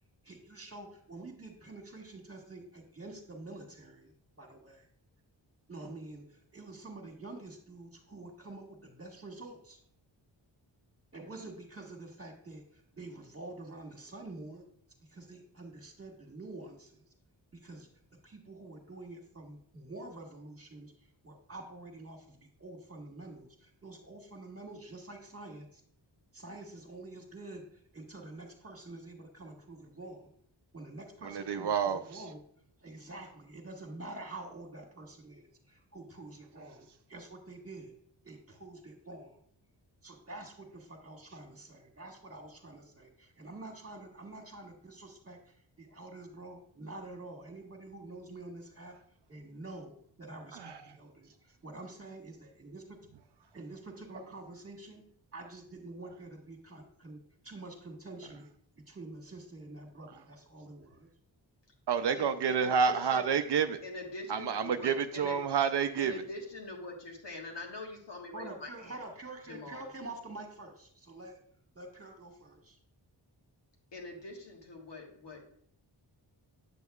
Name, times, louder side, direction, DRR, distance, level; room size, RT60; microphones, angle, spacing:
voice 1, 0.2-4.9 5.7-9.8 11.1-14.6 15.1-17.1 17.5-17.9 18.2-20.9 21.2-25.8 26.3-30.3 30.7-32.4 32.8-37.9 38.2-39.4 40.0-49.0 49.3-53.0 53.5-55.0 55.3-58.5 58.9-61.1 68.3-71.4 71.7-72.8, right 2 dB, 30° right, 1 dB, 1.7 m, -47 dB
voice 2, 31.2-32.2 50.6-50.8 61.9-63.8 64.3-66.2, right 6 dB, 60° right, 9 dB, 0.5 m, -29 dB
voice 3, 62.1-63.3 63.8-65.4 66.0-69.0 69.5-69.8 73.9-75.4, left 2 dB, 65° left, 0 dB, 1.6 m, -43 dB
8.7 x 6.3 x 2.3 m, 0.63 s
cardioid pair, 60°, 46 cm